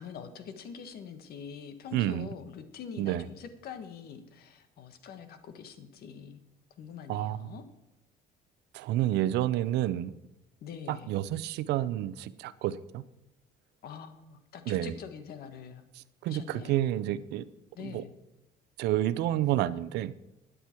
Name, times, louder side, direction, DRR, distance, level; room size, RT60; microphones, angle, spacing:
voice 1, 0.0-6.4 6.8-7.6 10.6-11.1 13.8-15.8 16.2-16.9 17.7-18.1, left 7 dB, 65° left, 9 dB, 1.6 m, -44 dB
voice 2, 1.9-2.3 3.0-3.3 7.1-7.6 8.7-10.2 10.9-13.0 14.7-14.9 16.0-17.5 17.8-18.0 18.8-20.1, right 13 dB, 85° right, 16 dB, 0.7 m, -30 dB
13.0 x 10.0 x 4.5 m, 0.93 s
cardioid pair, 110°, 17 cm